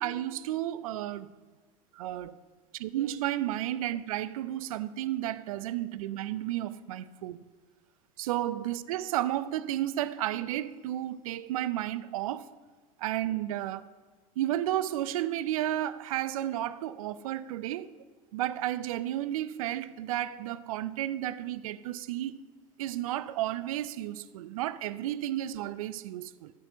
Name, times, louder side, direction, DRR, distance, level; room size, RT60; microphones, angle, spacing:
voice 1, 0.0-1.3 2.0-2.4 2.8-7.4 8.2-12.5 13.0-13.8 14.4-17.9 18.3-22.4 22.8-26.5, right 13 dB, 75° right, 0.5 m, -32 dB
15.5 x 6.6 x 5.8 m
hypercardioid pair, 80°, 18 cm